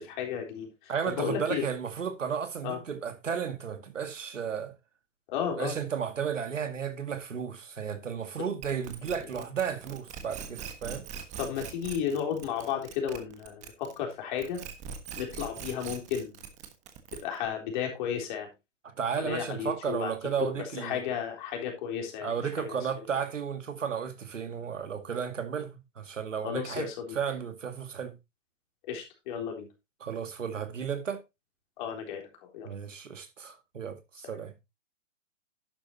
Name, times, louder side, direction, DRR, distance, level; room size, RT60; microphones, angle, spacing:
voice 1, 0.0-1.6 2.6-2.8 5.3-5.7 11.4-14.6 15.2-16.4 17.2-18.5 19.2-20.1 20.6-22.3 22.7-22.8 26.4-27.1 28.9-29.7 31.8-32.3 32.5-32.7, left 8 dB, 40° left, 3.7 m, -33 dB
voice 2, 0.9-4.7 5.5-11.0 18.8-21.0 22.2-26.9 27.1-28.2 30.0-31.2 32.6-34.5, right 7 dB, 80° right, 2.1 m, -33 dB
sound 1, 8.6-14.1 14.4-17.5, right 7 dB, 20° right, 1.4 m, -42 dB
11.5 x 9.0 x 2.8 m
hypercardioid pair, 135°, 37 cm